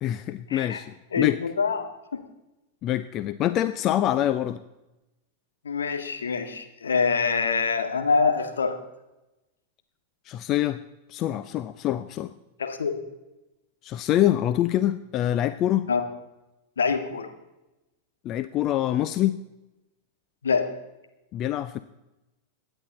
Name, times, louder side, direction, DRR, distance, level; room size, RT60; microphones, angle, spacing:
voice 1, 0.0-1.4 2.8-4.6 10.3-10.8 11.1-12.3 13.8-15.9 18.2-19.4 21.3-21.8, left 12 dB, 35° left, 12 dB, 0.6 m, -25 dB
voice 2, 1.1-1.9 2.1-2.2 5.6-8.8 12.6-13.0 15.9-16.0 16.8-17.3 20.4-20.7, left 5 dB, 70° left, 6 dB, 1.8 m, -25 dB
25.0 x 10.0 x 4.1 m, 0.98 s
figure-of-eight pair, 90°, 0 cm